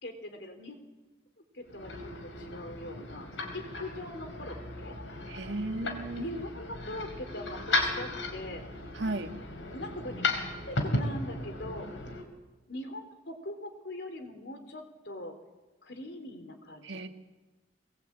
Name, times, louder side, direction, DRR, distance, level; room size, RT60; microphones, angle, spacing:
voice 1, 0.0-0.8 1.5-3.3 3.5-4.9 5.8-8.6 9.7-10.3 10.7-11.9 12.7-15.4 15.8-17.0, left 1 dB, 65° left, 6 dB, 3.6 m, -41 dB
sound 1, 1.6-12.2, left 2 dB, 85° left, 4.3 m, -35 dB
voice 2, 5.3-6.3 8.9-9.4 16.8-17.1, right 2 dB, 75° right, 6 dB, 1.9 m, -35 dB
23.5 x 20.0 x 8.7 m, 1.2 s
head